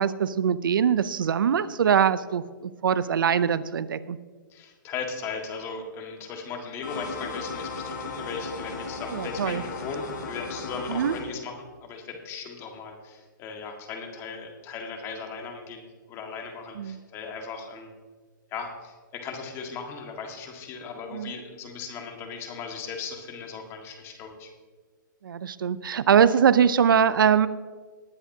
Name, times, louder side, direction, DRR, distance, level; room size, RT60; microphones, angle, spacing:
voice 1, 0.0-4.2 9.1-9.6 10.9-11.1 16.8-17.0 21.1-21.3 25.2-27.5, right 8 dB, 80° right, 16 dB, 0.6 m, -22 dB
voice 2, 4.5-17.9 18.5-24.5, left 5 dB, 25° left, 3 dB, 1.7 m, -37 dB
sound 1, 6.8-11.2, left 4 dB, 65° left, 4.1 m, -36 dB
19.0 x 9.7 x 2.8 m, 1.5 s
hypercardioid pair, 150°, 11 cm